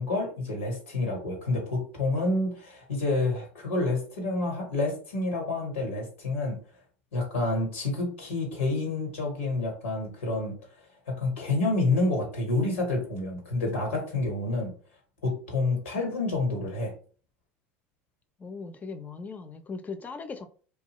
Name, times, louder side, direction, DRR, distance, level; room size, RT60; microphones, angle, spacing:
voice 1, 0.0-6.6 7.1-10.5 11.1-14.7 15.2-16.9, left 2 dB, 90° left, 1.2 m, -28 dB
voice 2, 18.4-20.5, left 4 dB, 25° left, 0.5 m, -38 dB
2.7 x 2.3 x 3.0 m
hypercardioid pair, 80°, 6 cm